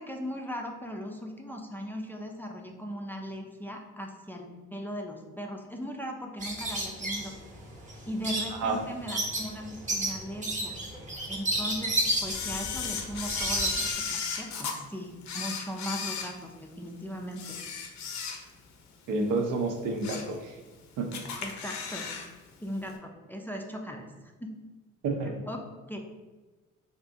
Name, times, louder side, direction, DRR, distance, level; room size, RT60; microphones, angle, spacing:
voice 1, 0.0-7.4 8.1-10.8 11.3-17.6 21.4-22.1 22.6-24.1 24.4-24.5 25.5-26.0, equal, 5° left, 2 dB, 0.3 m, -38 dB
sound 1, 6.4-13.9, right 1 dB, 25° right, 0.8 m, -32 dB
Camera, 12.3-14.8 15.2-16.9 17.3-18.7 19.1-19.2 19.7-20.4 20.7-20.8 21.1-22.3 22.5-22.6, left 6 dB, 65° left, 0.5 m, -35 dB
voice 2, 19.1-20.5 21.0-21.2 25.0-25.3, right 3 dB, 85° right, 3 dB, 0.6 m, -29 dB
3.5 x 2.4 x 2.6 m, 1.2 s
cardioid pair, 90°, 30 cm